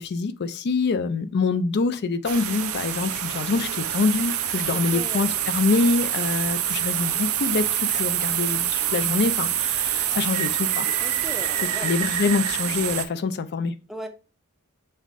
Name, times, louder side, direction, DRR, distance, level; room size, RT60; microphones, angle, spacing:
voice 1, 0.0-10.9 11.8-13.7, left 4 dB, 50° left, 0.4 m, -25 dB
sound 1, 2.2-13.0, right 11 dB, 85° right, 0.5 m, -26 dB
voice 2, 4.7-5.3 11.0-11.9 13.9-14.1, equal, ahead, 0.6 m, -37 dB
5.5 x 2.5 x 3.6 m
head